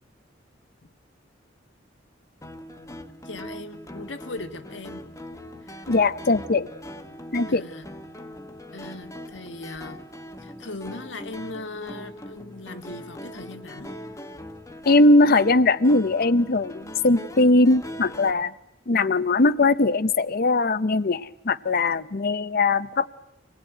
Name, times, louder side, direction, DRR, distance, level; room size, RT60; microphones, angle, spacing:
sound 1, 2.4-18.3, left 1 dB, 15° left, 1.4 m, -41 dB
voice 1, 3.2-5.0 5.6-5.9 7.5-7.9 8.7-10.0 10.4-13.9, left 2 dB, 75° left, 8 dB, 1.8 m, -39 dB
voice 2, 5.9-6.7 7.3-7.6 14.9-18.5 18.9-23.1, left 2 dB, 55° left, 15 dB, 0.8 m, -20 dB
25.0 x 19.5 x 9.2 m, 0.91 s
head